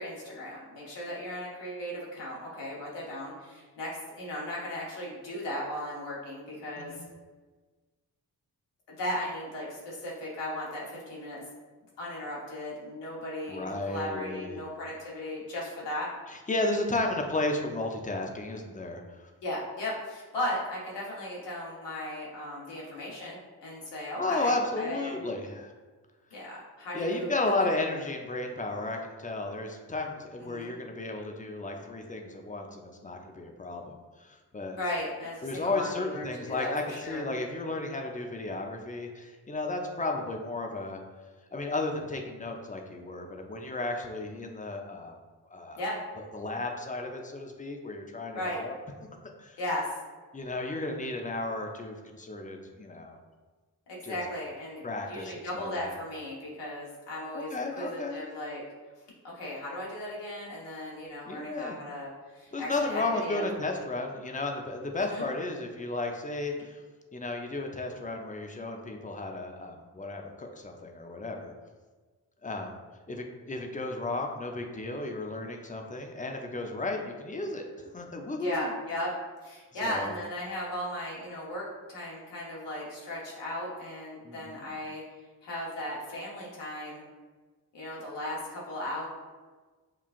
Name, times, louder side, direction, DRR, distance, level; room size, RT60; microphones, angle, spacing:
voice 1, 0.0-6.9 8.9-11.4 12.0-16.1 19.4-25.2 26.3-27.3 27.6-27.8 30.4-30.7 34.7-37.2 45.7-46.0 48.3-48.6 49.6-49.9 53.9-58.6 59.2-63.5 65.0-65.3 78.3-79.1 79.4-85.0 85.4-87.0 87.7-89.1, left 1 dB, 75° left, -5 dB, 1.2 m, -36 dB
voice 2, 13.5-14.6 16.3-19.0 24.2-25.7 26.9-34.8 35.4-41.0 41.5-45.2 45.5-45.8 46.3-48.8 49.4-49.6 50.3-53.2 54.0-54.2 54.8-55.9 57.3-58.2 61.3-61.8 62.5-66.8 67.1-71.5 72.4-72.8 73.1-78.7 79.8-80.1 84.2-84.8, left 2 dB, 20° left, 2 dB, 0.6 m, -33 dB
5.6 x 2.3 x 2.5 m, 1.3 s
supercardioid pair, 40°, 42 cm